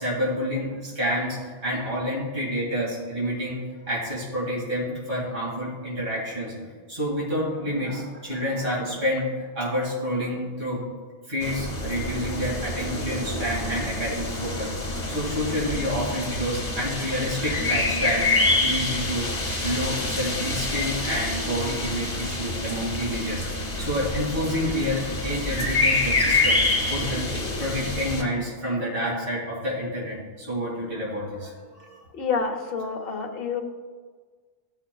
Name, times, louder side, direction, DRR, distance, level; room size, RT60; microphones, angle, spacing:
voice 1, 0.0-3.6 3.9-6.5 6.9-10.8 11.3-14.7 15.1-23.4 23.8-26.6 26.9-27.2 27.6-32.0, equal, 65° right, -7 dB, 2.4 m, -28 dB
sound 1, 11.4-28.2, left 2 dB, 45° left, 1.3 m, -27 dB
voice 2, 32.1-33.6, left 5 dB, 70° left, 5 dB, 0.9 m, -28 dB
13.0 x 5.7 x 2.3 m, 1.5 s
omnidirectional pair, 1.0 m